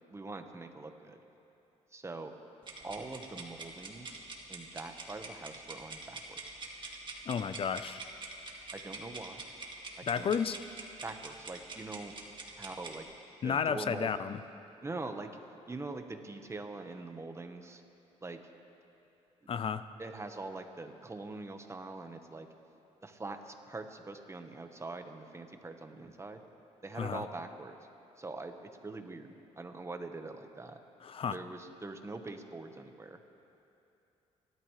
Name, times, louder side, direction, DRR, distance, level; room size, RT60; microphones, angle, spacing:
voice 1, 0.1-1.2 1.9-2.3 2.8-4.2 4.5-6.6 8.7-9.4 10.0-10.3 11.0-12.1 12.6-13.1 13.4-14.1 14.8-15.3 15.7-17.8 18.2-18.4 20.0-22.5 23.0-26.4 26.8-27.7 28.2-30.8 31.3-33.2, right 3 dB, 20° right, 6 dB, 1.2 m, -43 dB
sound 1, 2.6-13.0, right 3 dB, 40° right, 2.1 m, -45 dB
voice 2, 7.3-8.0 10.1-10.6 13.4-14.4 19.5-19.8 27.0-27.2 31.0-31.4, left 7 dB, 50° left, 12 dB, 0.6 m, -32 dB
28.0 x 12.5 x 3.2 m, 2.8 s
cardioid pair, 80°, 12 cm